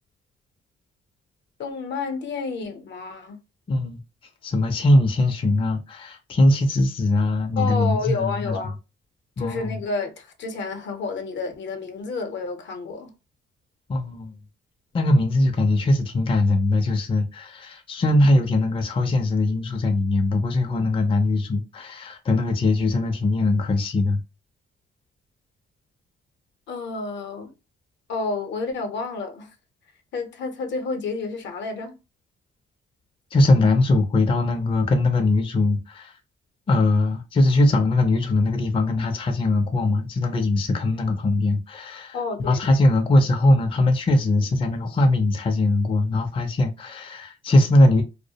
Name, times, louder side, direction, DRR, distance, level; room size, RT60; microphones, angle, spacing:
voice 1, 1.6-3.4 7.6-8.8 9.4-13.1 26.7-27.5 28.1-29.5 30.1-32.0 42.1-42.8, left 4 dB, 65° left, 0.6 m, -30 dB
voice 2, 3.7-4.0 4.4-8.6 9.4-9.8 13.9-14.4 14.9-24.2 33.3-36.1 36.7-48.0, left 2 dB, 25° left, 0.4 m, -21 dB
2.2 x 2.0 x 2.7 m
cardioid pair, 90°, 20 cm